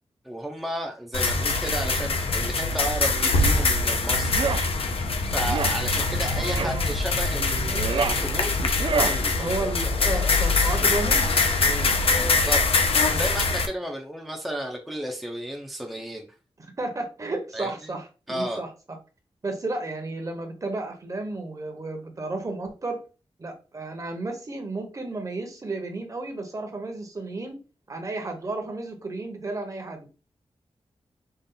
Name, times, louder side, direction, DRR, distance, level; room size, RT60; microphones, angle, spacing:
voice 1, 0.2-4.4 5.3-9.3 11.6-12.0 12.2-16.3 17.5-17.9 18.3-18.6, right 1 dB, ahead, 0 dB, 0.6 m, -33 dB
sound 1, 1.1-13.7, left 3 dB, 65° left, 0.7 m, -23 dB
sound 2, 4.2-4.7 5.4-5.8 6.5-6.8 7.6-8.2 8.8-9.2, right 5 dB, 55° right, 0.4 m, -27 dB
voice 2, 6.2-6.9 9.4-11.3 11.8-12.4 13.0-13.4 16.8-19.0 19.4-23.0 23.4-27.6 27.9-30.1, right 2 dB, 30° right, 4 dB, 1.0 m, -33 dB
5.5 x 2.4 x 3.8 m, 0.33 s
wide cardioid pair, 175°, 11 cm